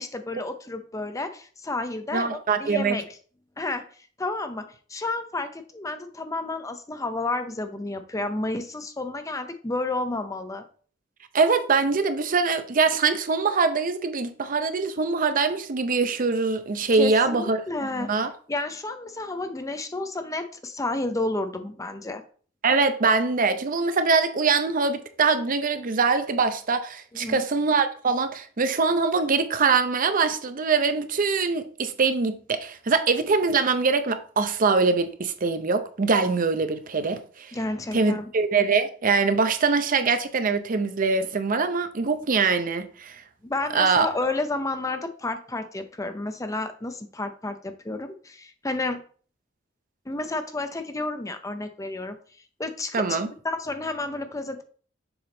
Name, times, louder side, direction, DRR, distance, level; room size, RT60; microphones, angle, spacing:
voice 1, 0.0-3.2 3.6-10.6 16.9-22.2 27.1-27.4 37.5-38.3 43.4-49.0 50.1-52.2 52.6-53.2 53.4-54.6, left 2 dB, 15° left, 0.6 m, -31 dB
voice 2, 2.1-3.0 11.3-17.6 18.0-18.3 22.6-37.5 37.9-43.2 43.7-44.1 52.9-53.3, right 4 dB, 45° right, 0.6 m, -23 dB
7.0 x 3.5 x 3.8 m
head